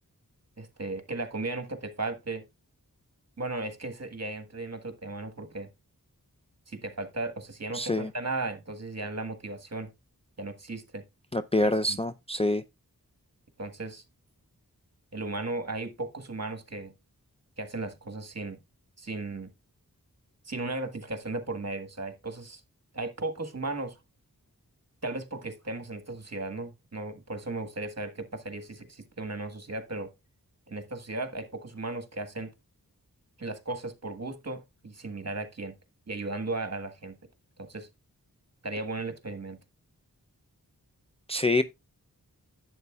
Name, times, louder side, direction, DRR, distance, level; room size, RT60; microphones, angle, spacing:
voice 1, 0.6-2.4 3.4-5.7 6.7-9.9 10.4-11.0 11.6-12.0 13.6-14.0 15.1-16.9 17.6-18.6 19.0-19.5 20.5-22.6 22.9-24.0 25.0-30.1 30.7-32.5 33.4-35.8 36.1-37.2 37.6-37.9 38.6-39.6, right 2 dB, 45° right, 1.5 m, -36 dB
voice 2, 7.7-8.1 11.3-12.6 41.3-41.6, left 1 dB, 15° left, 0.5 m, -26 dB
11.0 x 8.0 x 2.3 m
wide cardioid pair, 45°, 36 cm